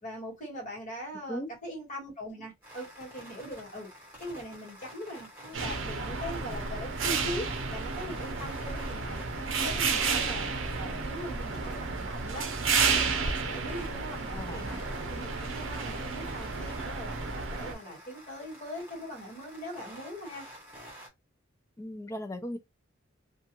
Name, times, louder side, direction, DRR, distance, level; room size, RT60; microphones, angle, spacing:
voice 1, 0.0-3.9 4.2-10.5 10.8-12.5 12.8-14.8 15.1-20.5, equal, 40° left, 1.4 m, -41 dB
sound 1, 2.6-21.1, equal, 10° right, 1.2 m, -50 dB
sound 2, 5.5-17.7, right 4 dB, 70° right, 0.6 m, -31 dB
voice 2, 14.3-14.7 21.8-22.6, equal, 15° left, 0.4 m, -37 dB
2.3 x 2.3 x 2.9 m
head